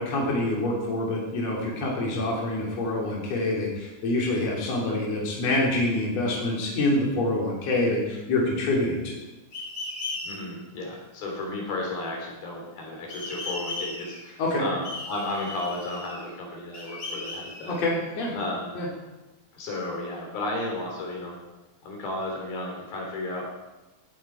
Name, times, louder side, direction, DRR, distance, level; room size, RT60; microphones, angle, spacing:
voice 1, 0.0-9.2 14.4-14.6 17.7-18.3 18.8-18.9, left 2 dB, 45° left, -3 dB, 4.0 m, -26 dB
sound 1, 9.5-10.4 13.1-14.3 14.8-16.3 16.7-18.3, left 2 dB, 30° left, 3.8 m, -37 dB
voice 2, 10.2-17.8 18.3-18.8 19.5-21.4 21.8-23.6, left 2 dB, 80° left, -1 dB, 5.0 m, -33 dB
17.5 x 11.5 x 4.5 m, 1.1 s
omnidirectional pair, 4.1 m